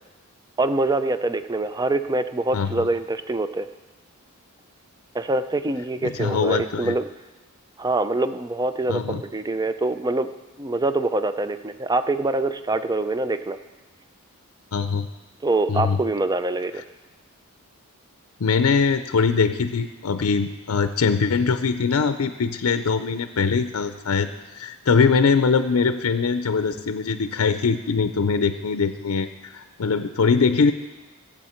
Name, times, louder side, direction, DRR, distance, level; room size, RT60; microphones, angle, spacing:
voice 1, 0.6-3.7 5.1-7.0 7.8-10.3 10.6-13.6 15.4-16.8, right 2 dB, 15° right, 10 dB, 0.4 m, -24 dB
voice 2, 6.0-6.9 8.9-9.2 14.7-15.1 15.7-16.0 16.7-16.8 18.4-24.3 24.5-30.7, left 5 dB, 75° left, 10 dB, 0.5 m, -22 dB
22.0 x 7.5 x 4.4 m, 1.2 s
head